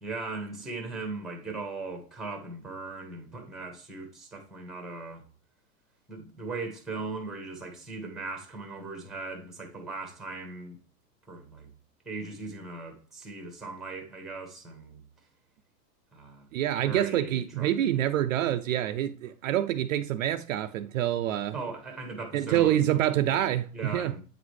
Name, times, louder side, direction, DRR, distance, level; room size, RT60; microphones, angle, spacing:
voice 1, 0.0-5.2 6.1-10.8 11.3-11.7 12.0-15.0 16.1-16.5 16.8-17.9 21.5-22.9 23.7-24.2, right 3 dB, ahead, 1.0 m, -39 dB
voice 2, 16.5-21.5 22.3-24.2, right 12 dB, 55° right, 0.5 m, -26 dB
8.7 x 3.9 x 3.2 m
supercardioid pair, 155°, 48 cm